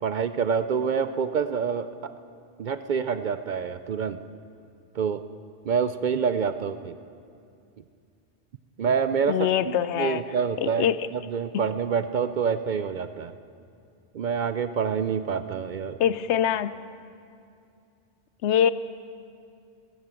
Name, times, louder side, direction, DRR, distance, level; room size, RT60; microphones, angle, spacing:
voice 1, 0.0-2.1 2.6-4.2 5.0-5.2 5.6-6.9 8.8-13.3 14.1-16.0, right 6 dB, 60° right, 11 dB, 0.5 m, -27 dB
voice 2, 9.3-10.3 10.6-11.1 11.5-11.6 16.0-16.8 18.4-18.7, left 9 dB, 90° left, 15 dB, 0.9 m, -24 dB
14.5 x 13.5 x 7.5 m, 2.4 s
omnidirectional pair, 1.1 m